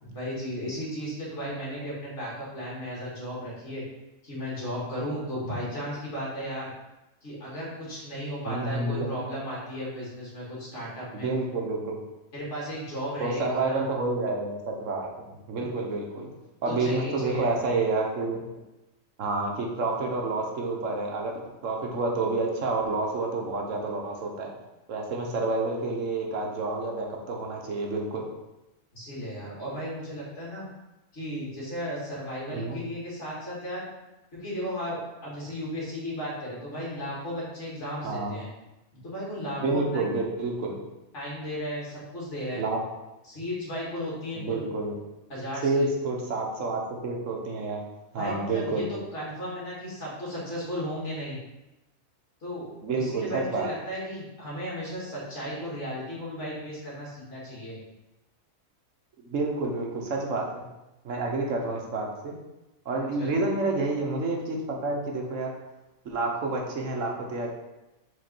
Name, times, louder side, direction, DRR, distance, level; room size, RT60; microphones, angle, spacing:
voice 1, 0.0-3.8 4.2-6.7 7.2-11.3 12.3-13.8 16.7-17.5 28.9-30.6 31.1-33.8 34.3-38.5 39.0-40.1 41.1-42.6 43.2-44.6 45.3-45.9 48.2-48.8 49.1-51.4 52.4-52.7 53.0-57.8 63.2-63.5, equal, 60° left, -6 dB, 2.4 m, -35 dB
voice 2, 8.4-9.1 11.1-12.0 13.2-16.3 16.6-18.5 19.2-24.5 24.9-28.3 32.5-32.8 38.0-38.3 39.6-40.8 42.6-42.8 44.3-44.9 45.6-47.8 48.1-48.9 52.8-53.7 59.2-60.7 61.0-62.3 62.8-65.5 66.0-67.5, right 3 dB, 65° right, 0 dB, 1.3 m, -29 dB
5.1 x 4.3 x 4.5 m, 0.98 s
omnidirectional pair, 1.4 m